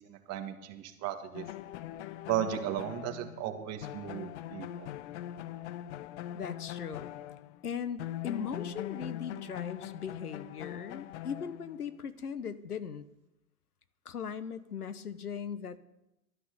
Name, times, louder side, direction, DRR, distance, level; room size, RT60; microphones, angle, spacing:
voice 1, 0.0-1.4 2.3-4.9, right 10 dB, 35° right, 6 dB, 1.9 m, -35 dB
sound 1, 1.3-7.7 8.0-12.0, left 12 dB, 50° left, 0.7 m, -42 dB
voice 2, 6.3-7.1 7.6-13.0 14.0-15.8, left 7 dB, 90° left, 14 dB, 1.1 m, -39 dB
13.0 x 9.8 x 6.8 m, 0.90 s
hypercardioid pair, 110°, 44 cm